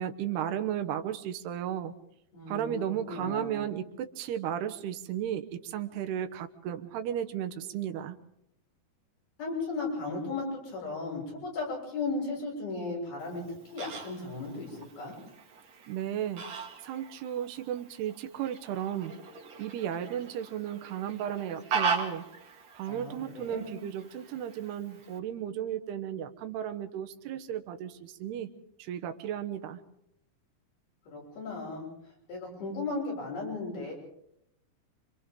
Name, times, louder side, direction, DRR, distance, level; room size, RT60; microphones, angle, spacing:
voice 1, 0.0-1.9 2.5-8.2 15.9-16.5 16.8-19.1 19.6-22.2 22.8-28.5 28.8-29.8, right 10 dB, 85° right, 7 dB, 3.1 m, -34 dB
voice 2, 2.3-2.7 3.1-3.5 9.4-15.2 22.9-23.8 31.1-31.9 32.3-33.9, left 3 dB, 70° left, -2 dB, 8.5 m, -36 dB
Fowl, 13.2-25.2, right 5 dB, 45° right, 2.9 m, -39 dB
27.5 x 26.0 x 3.8 m, 0.75 s
omnidirectional pair, 4.6 m